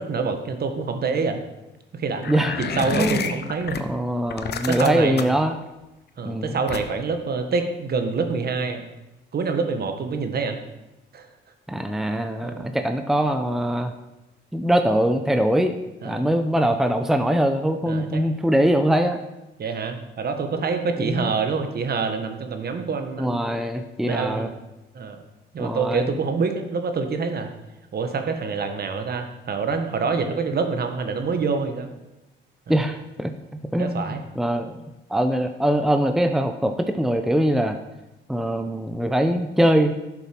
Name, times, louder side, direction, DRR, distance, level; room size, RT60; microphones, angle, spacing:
voice 1, 0.0-1.4 1.9-3.8 4.7-5.2 6.2-8.9 9.3-10.6 11.1-11.3 12.4-12.7 16.0-16.3 17.9-18.2 19.6-23.6 24.0-24.5 24.9-25.2 25.5-27.5 27.9-31.9 33.7-34.2, right 4 dB, 50° right, 6 dB, 1.6 m, -26 dB
sound 1, 2.2-3.8 4.3-5.4 6.7-7.1, left 7 dB, 55° left, 1.0 m, -29 dB
voice 2, 2.3-2.6 2.9-3.4 3.8-5.6 6.2-6.6 11.7-13.9 14.5-15.8 16.0-19.2 21.0-21.3 23.2-24.5 25.6-26.1 32.7-33.3 33.7-34.8 35.1-37.8 38.3-39.9, equal, ahead, 7 dB, 0.8 m, -22 dB
11.5 x 7.0 x 6.0 m, 0.99 s
cardioid pair, 90°, 20 cm